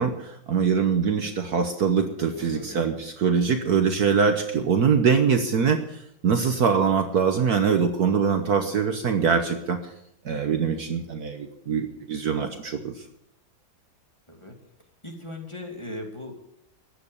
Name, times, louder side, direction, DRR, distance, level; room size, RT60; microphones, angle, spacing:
voice 1, 0.0-9.8 10.2-12.9, right 6 dB, 55° right, 6 dB, 1.4 m, -23 dB
voice 2, 2.3-2.8 14.3-14.5 15.0-16.4, left 1 dB, 15° left, 1 dB, 2.4 m, -38 dB
15.0 x 10.0 x 7.1 m, 0.75 s
omnidirectional pair, 2.1 m